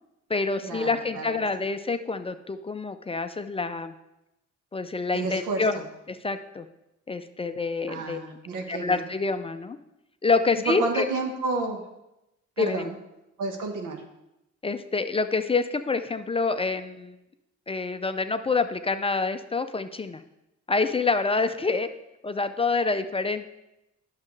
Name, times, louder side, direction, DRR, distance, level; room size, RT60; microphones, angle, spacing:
voice 1, 0.3-3.9 4.7-5.8 6.1-6.7 7.1-8.2 8.7-9.8 10.2-11.1 12.6-12.9 14.6-17.2 17.7-20.2 20.7-21.9 22.2-23.5, left 4 dB, 20° left, 9 dB, 0.4 m, -27 dB
voice 2, 5.1-5.8 7.9-9.1 10.7-11.8 12.6-12.9 13.4-14.0, right 3 dB, 90° right, 4 dB, 1.2 m, -30 dB
9.5 x 6.4 x 3.2 m, 0.91 s
cardioid pair, 90°, 30 cm